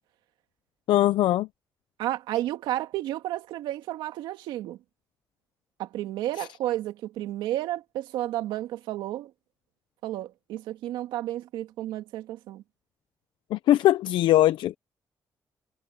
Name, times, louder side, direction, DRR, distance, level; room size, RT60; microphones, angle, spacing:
voice 1, 0.9-1.5 6.4-6.5 13.5-14.8, left 14 dB, 85° left, 0.7 m, -21 dB
voice 2, 2.0-4.8 5.8-9.3 10.0-12.6, right 14 dB, 90° right, 2.2 m, -32 dB
supercardioid pair, 55°, 8 cm